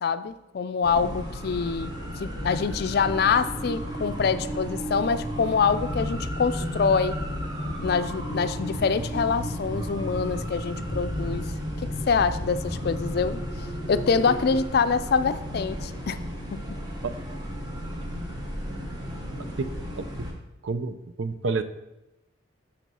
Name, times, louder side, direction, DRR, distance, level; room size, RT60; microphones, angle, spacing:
voice 1, 0.0-1.9 2.2-7.2 7.8-11.5 12.1-13.4 13.9-16.2 16.5-16.6, left 5 dB, 55° left, 12 dB, 0.4 m, -25 dB
sound 1, 0.8-20.3, equal, 20° right, 1.1 m, -35 dB
sound 2, 2.4-14.7, equal, 5° left, 1.0 m, -35 dB
voice 2, 19.6-20.0 20.6-21.6, right 4 dB, 80° right, 11 dB, 0.6 m, -29 dB
9.2 x 4.4 x 5.5 m, 0.92 s
head